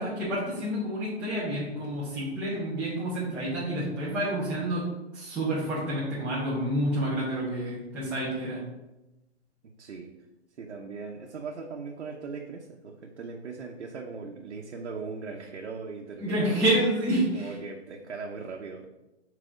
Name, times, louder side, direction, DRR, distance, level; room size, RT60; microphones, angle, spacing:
voice 1, 0.0-4.8 5.1-8.6 16.2-17.5, right 1 dB, 5° right, -12 dB, 0.7 m, -29 dB
voice 2, 9.8-10.1 10.6-16.6 17.3-18.9, right 4 dB, 85° right, 0 dB, 0.9 m, -39 dB
4.8 x 4.2 x 4.9 m, 1.0 s
hypercardioid pair, 165°, 34 cm